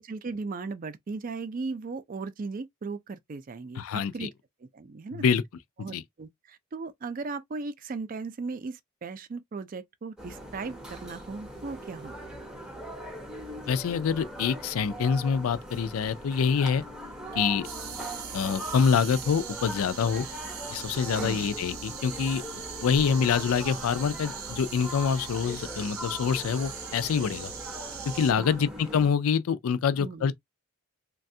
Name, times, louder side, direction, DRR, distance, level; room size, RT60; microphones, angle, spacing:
voice 1, 0.0-4.3 4.6-5.2 5.8-12.1 21.2-21.5 28.4-28.7 30.0-30.3, right 4 dB, 40° right, 0.4 m, -37 dB
voice 2, 3.8-4.3 5.1-5.4 5.9-6.0 13.7-16.8 17.3-17.7 18.3-20.3 20.7-27.5 28.1-30.3, left 6 dB, 80° left, 0.4 m, -26 dB
sound 1, 10.2-29.1, equal, 5° right, 0.6 m, -41 dB
sound 2, 17.6-28.3, right 8 dB, 90° right, 0.7 m, -40 dB
3.2 x 2.3 x 2.6 m
head